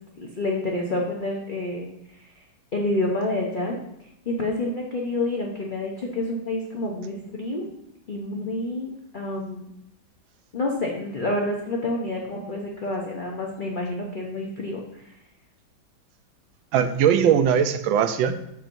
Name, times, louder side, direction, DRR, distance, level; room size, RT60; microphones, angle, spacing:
voice 1, 0.2-1.9 2.4-2.5 2.7-3.8 4.2-7.7 8.1-9.7 10.5-15.1, left 2 dB, 45° left, -1 dB, 0.6 m, -28 dB
voice 2, 16.7-18.4, right 8 dB, 85° right, 9 dB, 1.4 m, -20 dB
13.5 x 4.5 x 2.6 m, 0.81 s
omnidirectional pair, 2.1 m